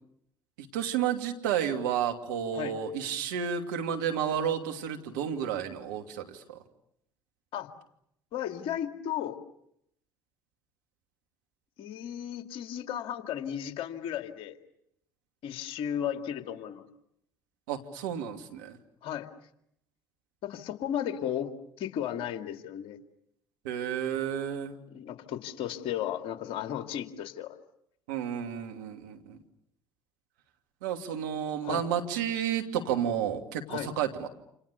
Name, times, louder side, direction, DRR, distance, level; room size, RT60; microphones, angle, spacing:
voice 1, 0.7-6.6 17.7-18.8 23.6-24.8 28.1-29.4 30.8-34.3, right 9 dB, 75° right, 4 dB, 2.8 m, -31 dB
voice 2, 8.3-9.4 11.8-14.6 15.4-16.8 19.0-19.3 20.4-23.0 24.9-27.6 31.6-31.8 33.7-33.9, left 10 dB, 60° left, 7 dB, 2.4 m, -34 dB
29.0 x 28.0 x 6.9 m, 0.77 s
hypercardioid pair, 60°, 11 cm